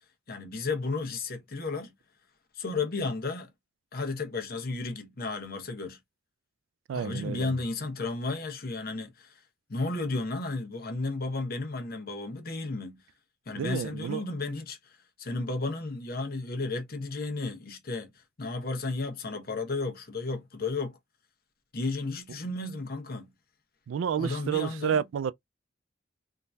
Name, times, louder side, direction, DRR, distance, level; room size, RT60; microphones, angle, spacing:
voice 1, 0.3-1.9 2.5-3.5 3.9-6.0 6.9-9.4 9.7-13.0 13.5-18.1 18.4-21.0 21.7-23.3 24.2-25.0, left 3 dB, 50° left, 1.0 m, -33 dB
voice 2, 6.9-7.5 13.6-14.2 23.9-25.3, right 7 dB, 80° right, 0.3 m, -30 dB
3.7 x 2.6 x 2.3 m
head